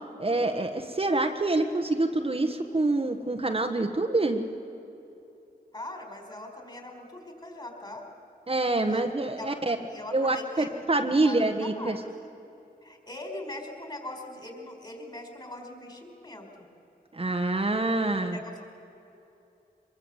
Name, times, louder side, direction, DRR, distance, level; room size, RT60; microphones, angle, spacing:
voice 1, 0.2-4.4 8.5-9.8 10.1-12.0 17.1-18.4, right 2 dB, 35° right, 4 dB, 1.4 m, -26 dB
voice 2, 5.7-8.0 8.9-9.0 9.4-10.8 11.2-12.0 12.8-16.7 18.2-18.6, left 1 dB, 30° left, 3 dB, 4.8 m, -41 dB
23.5 x 21.5 x 8.1 m, 2.9 s
cardioid pair, 60°, 17 cm